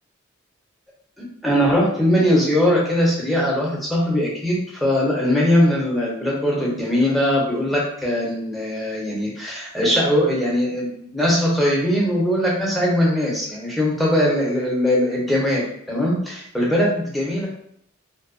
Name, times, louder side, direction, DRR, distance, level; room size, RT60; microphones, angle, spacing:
voice 1, 1.4-17.5, equal, ahead, -4 dB, 0.5 m, -20 dB
2.6 x 2.1 x 2.5 m, 0.69 s
head